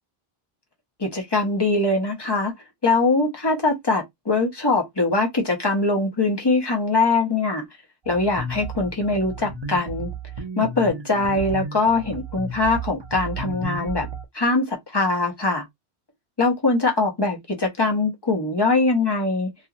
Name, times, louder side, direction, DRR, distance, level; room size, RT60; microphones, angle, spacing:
voice 1, 1.0-2.5 2.8-7.6 8.1-10.1 10.6-14.1 14.3-15.6 16.4-19.5, left 3 dB, 25° left, 0.9 m, -22 dB
sound 1, 8.0-14.2, right 3 dB, 35° right, 0.5 m, -33 dB
2.8 x 2.6 x 2.5 m
omnidirectional pair, 1.1 m